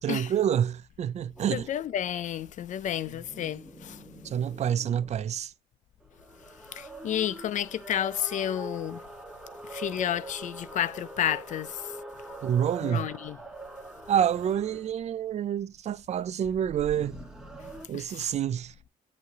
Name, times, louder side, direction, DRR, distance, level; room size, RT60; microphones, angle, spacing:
voice 1, 0.0-1.7 4.2-5.5 12.4-13.1 14.1-17.2 17.9-18.7, right 9 dB, 40° right, 0.4 m, -28 dB
sound 1, 1.4-1.7 2.8-5.3 6.0-15.0 16.4-17.9, right 2 dB, 5° right, 1.5 m, -44 dB
voice 2, 1.5-4.0 6.7-9.0 9.7-11.8 12.8-13.4 17.9-18.3, left 10 dB, 50° left, 0.4 m, -31 dB
8.2 x 3.1 x 6.4 m
cardioid pair, 110°, 17 cm